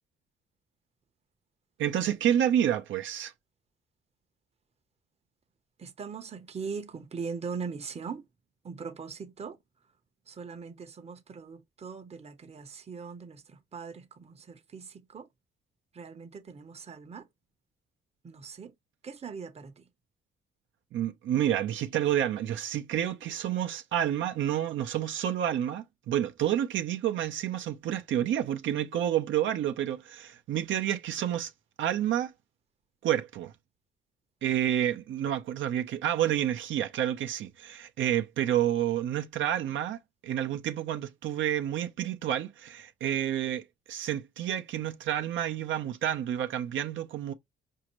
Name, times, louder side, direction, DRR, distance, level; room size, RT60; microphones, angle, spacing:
voice 1, 1.8-3.3 20.9-31.5 31.8-32.3 33.0-33.5 34.4-47.3, right 11 dB, 75° right, 0.7 m, -29 dB
voice 2, 5.8-8.2 8.6-9.6 10.3-15.3 15.9-17.3 18.2-18.7 19.0-19.9, right 5 dB, 30° right, 0.8 m, -40 dB
5.0 x 2.8 x 3.0 m
cardioid pair, 90°, 20 cm